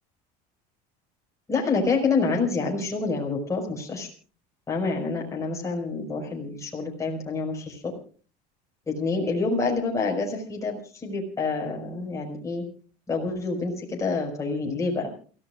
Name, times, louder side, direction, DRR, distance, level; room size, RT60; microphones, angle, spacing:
voice 1, 1.5-4.1 4.7-7.9 8.9-12.6 13.1-15.1, left 4 dB, 15° left, -1 dB, 5.5 m, -27 dB
29.0 x 16.5 x 2.5 m, 0.40 s
cardioid pair, 145°, 20 cm